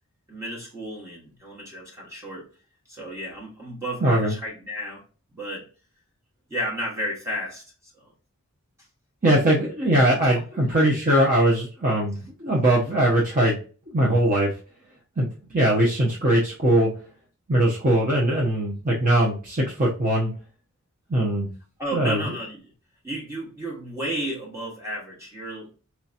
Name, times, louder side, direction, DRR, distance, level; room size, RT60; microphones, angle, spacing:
voice 1, 0.3-2.5 2.9-5.0 5.3-5.6 6.5-8.1 10.2-10.4 10.7-10.8 21.8-22.6 23.0-25.7, equal, 15° right, -4 dB, 1.1 m, -33 dB
voice 2, 4.0-4.3 9.2-13.6 13.9-14.5 15.2-16.9 17.5-20.3 21.1-21.5 21.9-22.2, right 1 dB, 40° right, -4 dB, 0.8 m, -21 dB
4.4 x 2.8 x 2.4 m, 0.36 s
head